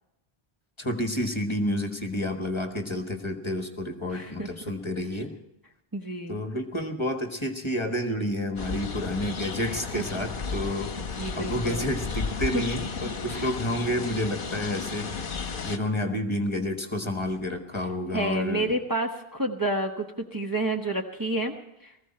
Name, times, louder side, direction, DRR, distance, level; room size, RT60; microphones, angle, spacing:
voice 1, 0.8-5.3 6.3-10.9 11.4-15.2 15.6-18.7, left 1 dB, 30° left, 5 dB, 1.4 m, -30 dB
voice 2, 4.1-4.5 5.9-6.4 9.6-10.2 11.2-11.9 12.5-12.6 13.3-13.5 18.1-21.5 21.8-21.9, right 1 dB, 20° right, 2 dB, 1.0 m, -30 dB
sound 1, 8.6-15.8, left 5 dB, 55° left, 1.1 m, -33 dB
19.0 x 15.0 x 4.3 m, 0.85 s
omnidirectional pair, 1.0 m